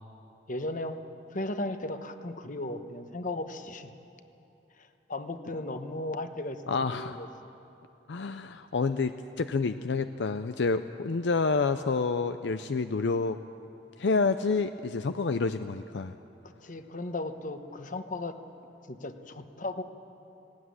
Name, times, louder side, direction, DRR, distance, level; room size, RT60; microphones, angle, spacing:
voice 1, 0.5-1.0 1.3-3.9 4.8-6.6 6.9-7.3 16.4-18.3 18.9-19.8, left 2 dB, 45° left, 8 dB, 1.1 m, -36 dB
voice 2, 6.7-7.2 8.1-13.4 14.0-16.2, left 4 dB, 75° left, 10 dB, 0.5 m, -28 dB
19.0 x 17.0 x 9.5 m, 2.8 s
head